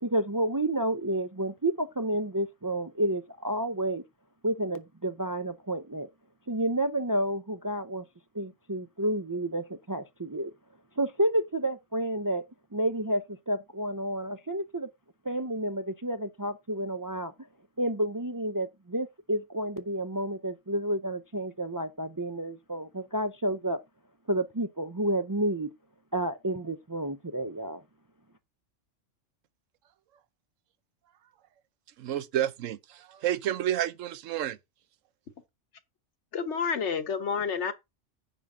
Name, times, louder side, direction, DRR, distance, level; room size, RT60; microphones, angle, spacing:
voice 1, 0.0-4.0 4.4-6.1 6.5-8.0 8.3-10.5 11.0-12.4 12.7-14.9 15.2-17.3 17.8-23.8 24.3-25.7 26.1-27.8, right 1 dB, 30° right, 0.4 m, -30 dB
voice 2, 32.0-34.6, right 11 dB, 85° right, 1.0 m, -30 dB
voice 3, 36.3-37.7, left 6 dB, 65° left, 1.3 m, -29 dB
10.0 x 3.7 x 7.2 m
omnidirectional pair, 1.3 m